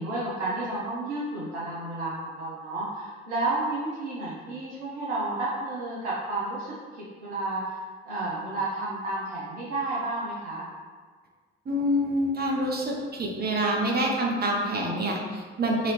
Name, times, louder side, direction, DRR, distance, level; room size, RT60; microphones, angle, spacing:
voice 1, 0.0-10.6, right 2 dB, 70° right, -8 dB, 0.9 m, -31 dB
voice 2, 11.7-15.9, equal, 25° right, -1 dB, 0.9 m, -26 dB
5.1 x 2.8 x 3.3 m, 1.5 s
figure-of-eight pair, 50°, 35 cm